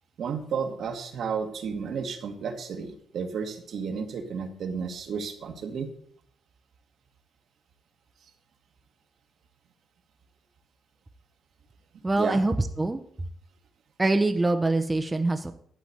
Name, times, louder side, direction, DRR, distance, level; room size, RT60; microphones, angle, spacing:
voice 1, 0.2-5.9 12.2-12.4, right 6 dB, 65° right, 5 dB, 1.5 m, -32 dB
voice 2, 12.0-13.0 14.0-15.5, right 2 dB, 15° right, 6 dB, 0.7 m, -24 dB
11.5 x 4.0 x 7.8 m, 0.63 s
cardioid pair, 90°, 0 cm